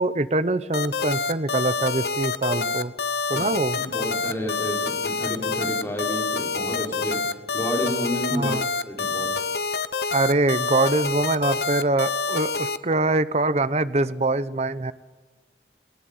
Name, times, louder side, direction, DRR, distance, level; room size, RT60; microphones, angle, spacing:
voice 1, 0.0-2.9 3.3-3.8 8.3-8.7 10.1-14.9, right 2 dB, 35° right, 14 dB, 0.8 m, -24 dB
sound 1, 0.7-12.8, left 4 dB, 65° left, 1.0 m, -27 dB
voice 2, 3.7-8.5 8.9-9.3, equal, 15° left, -2 dB, 5.7 m, -30 dB
21.5 x 19.0 x 9.4 m, 1.4 s
head